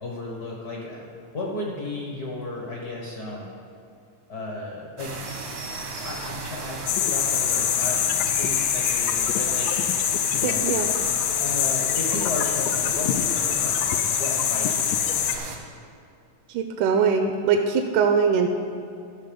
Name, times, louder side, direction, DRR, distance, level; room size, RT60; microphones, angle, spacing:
voice 1, 0.0-3.5 4.3-5.2 6.0-8.0 8.4-9.7 10.3-10.7 11.4-15.3, left 2 dB, 55° left, -2 dB, 1.1 m, -34 dB
sound 1, 5.0-15.6, right 3 dB, 65° right, 1.1 m, -35 dB
sound 2, 6.9-15.4, left 10 dB, 85° left, 2.2 m, -24 dB
voice 2, 10.4-10.9 16.5-18.5, right 6 dB, 80° right, 4 dB, 2.1 m, -22 dB
13.5 x 6.4 x 5.3 m, 2.6 s
omnidirectional pair, 3.7 m